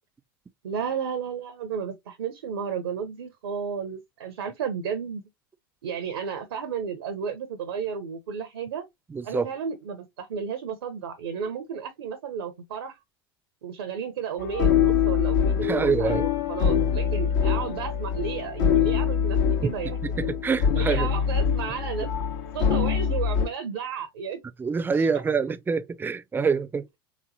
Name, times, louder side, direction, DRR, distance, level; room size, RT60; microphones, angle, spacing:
voice 1, 0.6-5.2 5.8-8.8 9.2-13.0 13.6-20.0 20.7-22.1 22.5-24.4 24.9-25.1, right 7 dB, 75° right, 0.7 m, -33 dB
voice 2, 9.1-9.5 15.6-16.2 20.2-21.1 24.6-26.9, right 5 dB, 15° right, 0.5 m, -25 dB
sound 1, 14.4-23.5, left 7 dB, 65° left, 1.0 m, -24 dB
3.5 x 3.0 x 2.6 m
hypercardioid pair, 85°, 12 cm